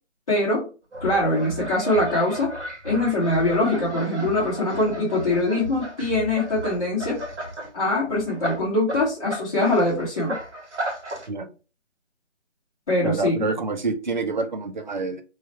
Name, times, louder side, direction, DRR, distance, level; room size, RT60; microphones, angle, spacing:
voice 1, 0.3-0.7 1.0-2.5 2.8-7.2 7.7-10.4 12.9-13.4, left 2 dB, 30° left, -8 dB, 1.1 m, -23 dB
sound 1, 0.9-7.7 8.1-11.3, right 1 dB, 70° right, 1.6 m, -34 dB
voice 2, 13.0-15.2, right 3 dB, 40° right, 7 dB, 0.4 m, -27 dB
3.2 x 2.3 x 4.2 m, 0.33 s
hypercardioid pair, 170°, 36 cm